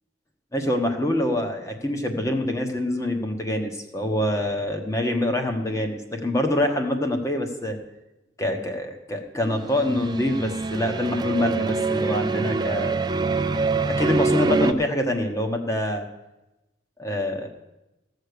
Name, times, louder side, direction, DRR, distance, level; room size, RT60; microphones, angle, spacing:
voice 1, 0.5-7.8 8.4-13.1 13.9-16.1 17.0-17.5, left 1 dB, 15° left, 4 dB, 1.1 m, -25 dB
sound 1, 9.6-14.7, right 4 dB, 20° right, 0.4 m, -25 dB
15.5 x 6.5 x 6.7 m, 0.99 s
head